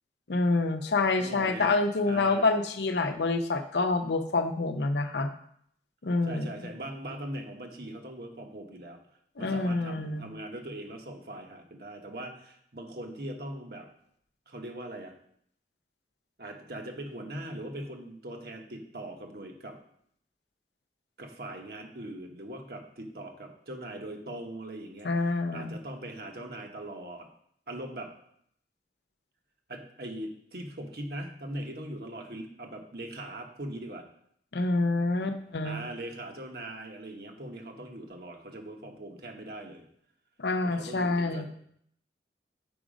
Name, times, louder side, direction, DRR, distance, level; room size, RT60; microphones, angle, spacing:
voice 1, 0.3-5.3 6.0-6.5 9.4-10.3 25.0-25.8 34.5-35.8 40.4-41.5, left 3 dB, 75° left, 8 dB, 0.7 m, -27 dB
voice 2, 1.2-1.8 2.1-2.5 6.2-9.0 9.4-13.9 14.5-15.2 16.4-19.8 21.2-27.3 27.7-28.1 29.7-34.1 35.6-39.8 40.6-41.5, right 1 dB, 60° right, 3 dB, 1.2 m, -41 dB
6.9 x 5.1 x 5.0 m, 0.68 s
head